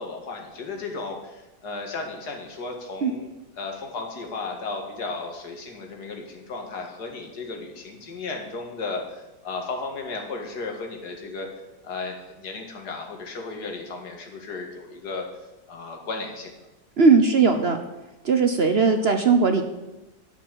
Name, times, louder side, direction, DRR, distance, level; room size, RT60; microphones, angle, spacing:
voice 1, 0.0-3.3 3.5-9.0 9.4-11.5 11.8-15.3 15.7-16.5, left 3 dB, 75° left, 2 dB, 2.4 m, -34 dB
voice 2, 17.0-17.8 18.2-19.6, right 4 dB, 50° right, 6 dB, 0.9 m, -18 dB
11.0 x 5.7 x 8.9 m, 1.0 s
omnidirectional pair, 1.7 m